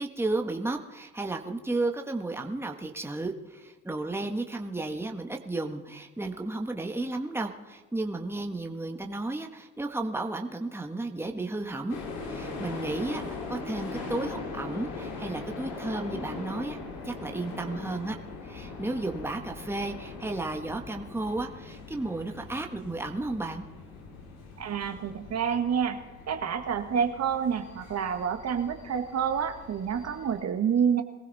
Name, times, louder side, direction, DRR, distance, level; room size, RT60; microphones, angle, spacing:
voice 1, 0.0-12.0 12.3-13.2 13.5-16.8 17.0-18.2 18.4-23.7, right 2 dB, 5° right, 3 dB, 1.6 m, -33 dB
sound 1, 11.9-30.4, left 3 dB, 90° left, 2.8 m, -41 dB
voice 2, 24.6-26.0 26.3-31.0, right 7 dB, 50° right, 7 dB, 1.6 m, -28 dB
22.5 x 15.5 x 4.2 m, 1.2 s
supercardioid pair, 75°, 32 cm